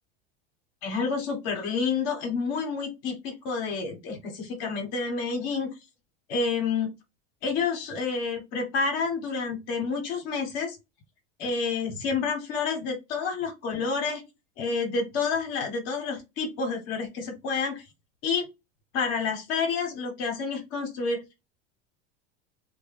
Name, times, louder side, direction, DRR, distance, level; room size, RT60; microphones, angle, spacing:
voice 1, 0.8-5.7 6.3-6.9 7.4-10.8 11.4-14.2 14.6-17.8 18.2-18.5 18.9-21.2, left 4 dB, 65° left, 3 dB, 1.0 m, -29 dB
2.1 x 2.1 x 3.3 m, 0.23 s
hypercardioid pair, 95°, 32 cm